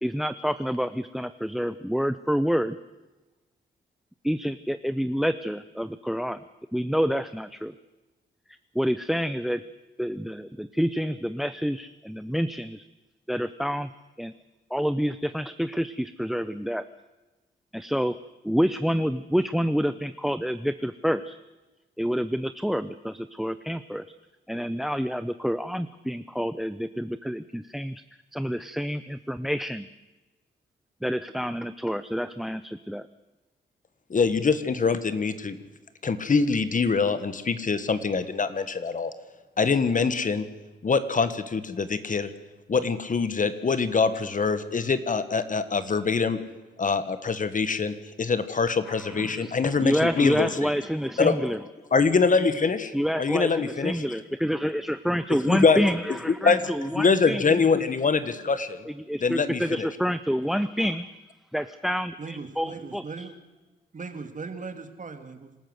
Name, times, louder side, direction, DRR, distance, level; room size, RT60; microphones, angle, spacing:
voice 1, 0.0-2.8 4.2-6.4 6.7-7.7 8.7-9.6 10.0-12.8 13.3-13.9 14.2-14.3 14.7-16.9 17.7-18.2 18.4-21.4 22.0-24.0 24.5-28.0 28.3-29.9 31.0-33.1 48.9-51.6 52.9-57.6 58.9-61.1 61.5-63.3, equal, ahead, 0.6 m, -28 dB
voice 2, 34.1-35.6 36.0-39.1 39.6-40.4 40.8-42.3 42.7-46.4 46.8-50.5 51.2-51.3 51.9-53.9 55.5-55.8 56.4-58.9 59.2-59.9, left 4 dB, 40° left, 1.4 m, -24 dB
voice 3, 62.2-63.3 63.9-65.5, right 4 dB, 40° right, 2.2 m, -38 dB
26.0 x 13.5 x 7.9 m
cardioid pair, 100°, 20 cm